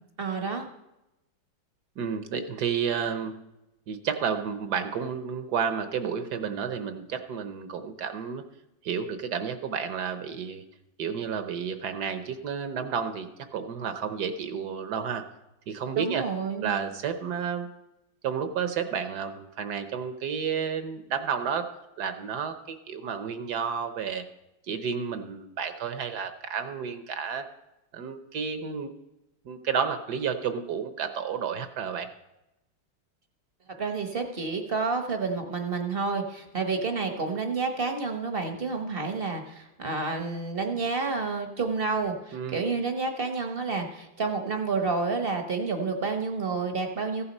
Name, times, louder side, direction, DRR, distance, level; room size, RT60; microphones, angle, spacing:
voice 1, 0.2-0.7 16.0-16.7 33.8-47.2, right 4 dB, 40° right, 5 dB, 0.9 m, -29 dB
voice 2, 2.0-3.3 3.9-8.4 8.8-10.6 11.0-15.2 15.7-16.2 16.6-17.7 18.2-21.7 22.0-24.2 24.6-27.5 27.9-28.9 29.4-32.1 42.3-42.6, right 7 dB, 65° right, 9 dB, 1.2 m, -31 dB
15.0 x 7.1 x 5.3 m, 0.92 s
omnidirectional pair, 2.1 m